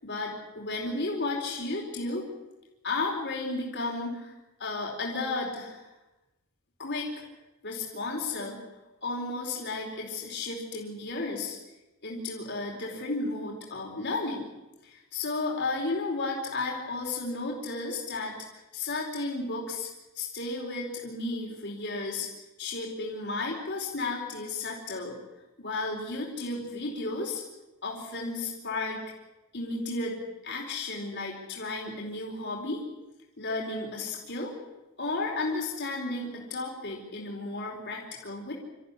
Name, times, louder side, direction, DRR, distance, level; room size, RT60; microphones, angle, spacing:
voice 1, 0.0-2.3 2.8-4.3 4.6-5.9 6.8-7.2 7.6-8.6 9.0-11.6 12.0-14.5 14.8-19.9 20.1-22.3 22.6-25.2 25.6-27.4 27.8-29.0 29.5-30.2 30.4-32.8 33.4-34.6 35.0-38.5, left 3 dB, 55° left, -2 dB, 4.5 m, -33 dB
26.5 x 14.5 x 9.9 m, 1.0 s
head